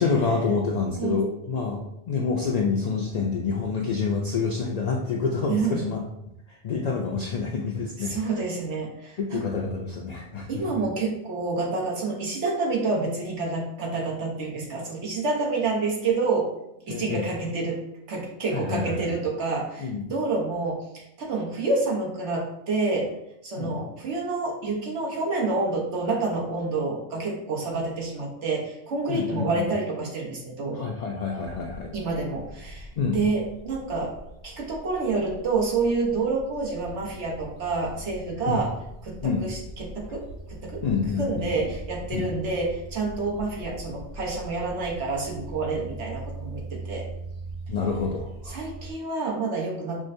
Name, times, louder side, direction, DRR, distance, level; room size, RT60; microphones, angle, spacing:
voice 1, 0.0-6.0 6.6-8.2 9.2-10.6 16.9-17.3 18.5-19.2 19.8-20.0 23.6-23.7 29.1-29.7 30.7-31.9 33.0-33.2 38.5-38.6 39.2-39.4 40.8-41.7 42.1-42.3 47.7-48.6, left 5 dB, 60° left, 0 dB, 0.4 m, -27 dB
voice 2, 5.5-5.8 8.0-9.4 10.5-16.5 16.9-17.8 18.1-23.1 23.4-30.9 31.9-34.1 34.4-38.7 39.0-40.8 41.2-47.0 48.5-50.0, right 3 dB, 90° right, -2 dB, 1.3 m, -28 dB
sound 1, 31.4-48.9, right 1 dB, 55° right, 0.8 m, -41 dB
6.0 x 2.1 x 2.6 m, 0.83 s
omnidirectional pair, 1.1 m